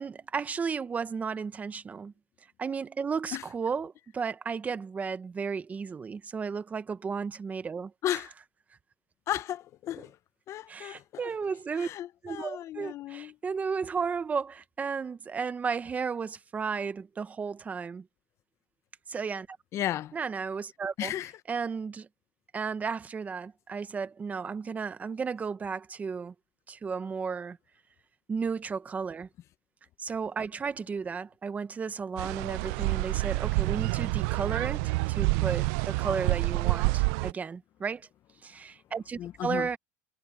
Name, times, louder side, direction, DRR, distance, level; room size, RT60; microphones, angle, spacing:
voice 1, 0.0-2.1 2.6-7.9 10.0-10.1 10.7-11.9 12.2-18.0 19.1-19.6 20.1-21.1 21.5-22.1 22.5-26.3 26.7-27.6 28.3-29.3 30.0-38.1 38.4-39.8, right 5 dB, 20° right, 0.9 m, -34 dB
voice 2, 8.0-8.3 9.3-10.2 10.5-11.3 11.7-13.3 19.7-20.1 21.0-21.3 39.2-39.7, left 12 dB, 40° left, 0.6 m, -34 dB
sound 1, 32.2-37.3, right 26 dB, 70° right, 0.4 m, -28 dB
supercardioid pair, 130°, 7 cm